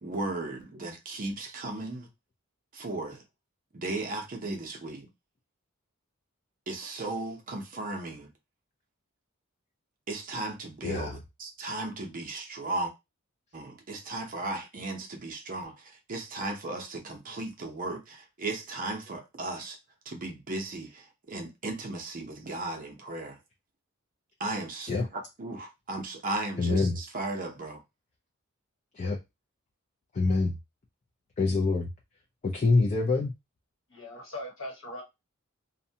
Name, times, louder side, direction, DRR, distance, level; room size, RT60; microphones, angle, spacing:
voice 1, 0.0-2.1 2.7-3.2 3.7-5.1 6.7-8.3 10.1-12.9 13.5-19.8 20.1-23.4 24.4-27.8, right 2 dB, 40° right, 0.6 m, -36 dB
voice 2, 10.8-11.1 24.9-25.0 26.6-27.0 29.0-29.2 30.1-30.5 31.4-31.9 32.4-33.3, left 3 dB, 35° left, 0.4 m, -25 dB
voice 3, 33.9-35.0, left 1 dB, 60° left, 1.0 m, -40 dB
2.6 x 2.1 x 2.7 m
head